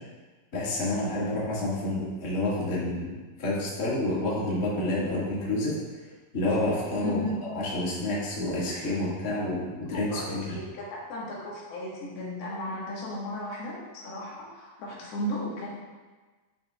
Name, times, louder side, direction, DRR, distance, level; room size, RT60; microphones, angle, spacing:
voice 1, 0.5-3.1 3.4-5.8 6.3-10.6, left 1 dB, 30° left, -8 dB, 1.6 m, -29 dB
voice 2, 7.0-7.4 9.9-15.7, left 1 dB, 75° left, -5 dB, 3.4 m, -35 dB
11.0 x 6.2 x 2.4 m, 1.3 s
omnidirectional pair, 4.4 m